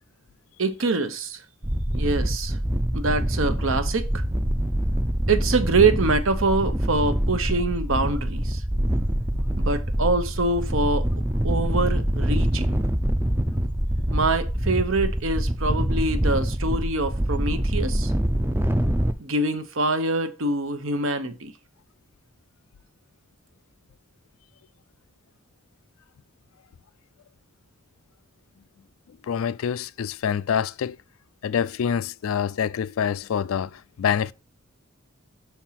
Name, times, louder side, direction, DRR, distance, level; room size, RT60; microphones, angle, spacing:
voice 1, 0.6-1.4 1.9-2.6 2.9-4.2 5.3-8.6 9.6-11.1 11.4-12.8 14.1-18.1 19.2-21.5, right 3 dB, 70° right, 0.9 m, -25 dB
sound 1, 1.6-19.1, equal, 10° right, 0.4 m, -25 dB
voice 2, 29.2-31.0 31.4-34.3, left 7 dB, 75° left, 0.3 m, -26 dB
5.9 x 4.5 x 5.7 m
head